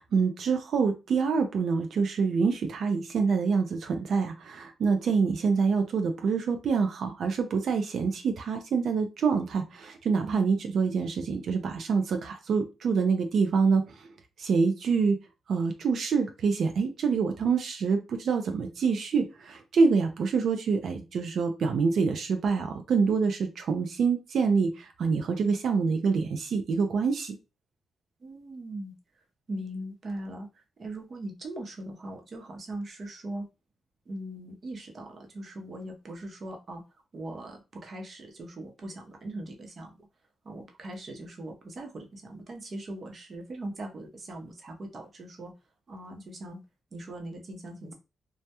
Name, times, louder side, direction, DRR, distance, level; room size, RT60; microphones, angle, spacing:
voice 1, 0.0-14.1 14.4-15.2 15.5-27.4, right 5 dB, 70° right, 6 dB, 0.4 m, -26 dB
voice 2, 28.2-28.9 29.5-30.5 30.8-33.5 34.1-36.8 37.1-39.9 40.5-45.5 45.9-46.6 46.9-47.9, right 1 dB, 50° right, 2 dB, 0.7 m, -40 dB
2.2 x 2.1 x 2.8 m, 0.27 s
cardioid pair, 85°, 0 cm